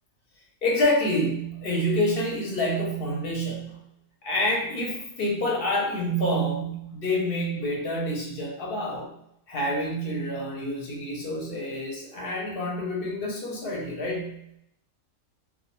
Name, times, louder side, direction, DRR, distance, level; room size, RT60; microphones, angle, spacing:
voice 1, 0.6-3.8 4.2-9.1 9.5-14.4, equal, 50° left, -2 dB, 0.7 m, -27 dB
2.3 x 2.3 x 2.9 m, 0.76 s
omnidirectional pair, 1.5 m